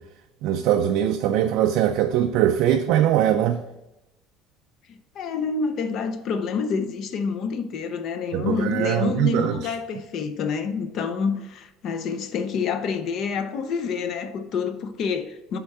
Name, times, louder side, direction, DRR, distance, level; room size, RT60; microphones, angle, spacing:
voice 1, 0.4-3.6 8.3-9.5, right 10 dB, 60° right, 0.4 m, -21 dB
voice 2, 4.9-15.6, left 5 dB, 40° left, 0.5 m, -28 dB
7.8 x 3.6 x 5.5 m
cardioid pair, 175°, 0 cm